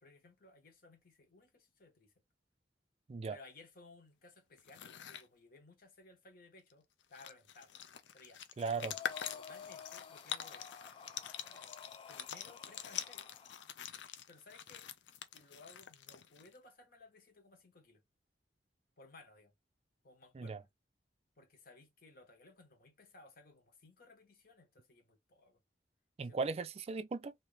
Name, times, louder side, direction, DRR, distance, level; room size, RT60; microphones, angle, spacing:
voice 1, 0.0-2.1 3.3-7.7 8.1-8.4 9.2-10.8 12.1-13.3 14.3-14.9 15.3-18.0 19.0-19.5 20.0-20.7 21.4-25.6 26.2-26.7, left 3 dB, 55° left, 1.1 m, -59 dB
sound 1, 4.6-5.3 6.7-6.8 7.0-16.6, left 9 dB, 85° left, 0.5 m, -45 dB
voice 2, 8.6-9.0 20.3-20.6 26.2-27.3, right 4 dB, 35° right, 0.4 m, -37 dB
Breathing, 8.7-13.7, left 6 dB, 30° left, 0.4 m, -52 dB
2.9 x 2.7 x 3.3 m
head